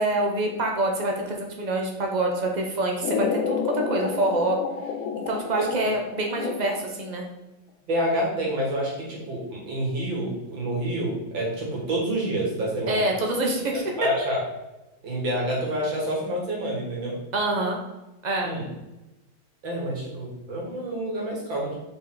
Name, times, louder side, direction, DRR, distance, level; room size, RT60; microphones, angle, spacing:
voice 1, 0.0-4.6 5.2-7.2 12.9-13.8 17.3-17.8 18.2-18.5, right 2 dB, 55° right, 1 dB, 0.4 m, -26 dB
sound 1, 3.0-7.0, left 6 dB, 85° left, 0.8 m, -30 dB
voice 2, 7.9-13.0 14.0-14.4 15.0-17.2 18.4-18.7 19.6-21.7, right 1 dB, 75° right, -3 dB, 2.7 m, -28 dB
5.3 x 4.8 x 3.9 m, 1.0 s
omnidirectional pair, 2.1 m